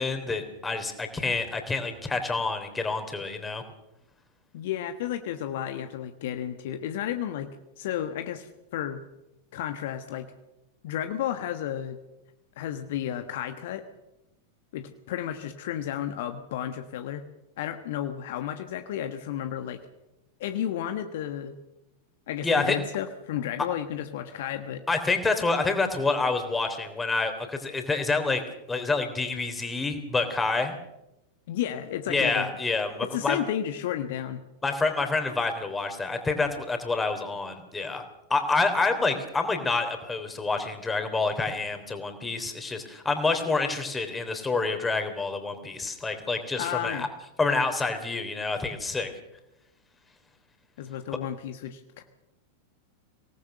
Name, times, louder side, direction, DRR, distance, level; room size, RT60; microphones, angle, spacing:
voice 1, 0.0-3.6 22.4-22.8 23.6-23.7 24.9-28.4 28.7-30.7 32.1-33.4 34.6-38.0 38.3-47.1 47.4-49.1, left 3 dB, 10° left, 6 dB, 3.4 m, -27 dB
voice 2, 4.5-7.5 7.8-9.0 9.5-10.3 10.8-12.0 12.6-13.8 14.7-17.2 17.6-19.8 20.4-21.6 22.3-24.8 31.5-32.5 33.1-34.4 46.6-47.1 50.8-52.0, left 10 dB, 55° left, 8 dB, 1.3 m, -32 dB
25.0 x 18.5 x 6.8 m, 0.92 s
figure-of-eight pair, 90°, 0 cm